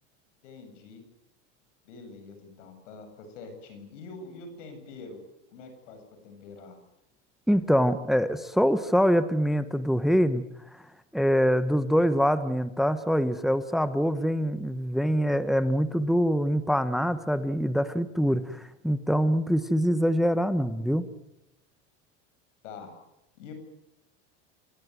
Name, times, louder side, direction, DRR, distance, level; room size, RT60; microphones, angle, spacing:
voice 1, 0.4-1.0 1.9-5.2 5.5-6.8 22.6-22.9 23.4-23.5, left 4 dB, 80° left, 7 dB, 7.6 m, -45 dB
voice 2, 7.5-10.4 11.1-21.1, equal, ahead, 12 dB, 1.2 m, -24 dB
27.0 x 17.5 x 9.3 m, 0.87 s
supercardioid pair, 105°, 36 cm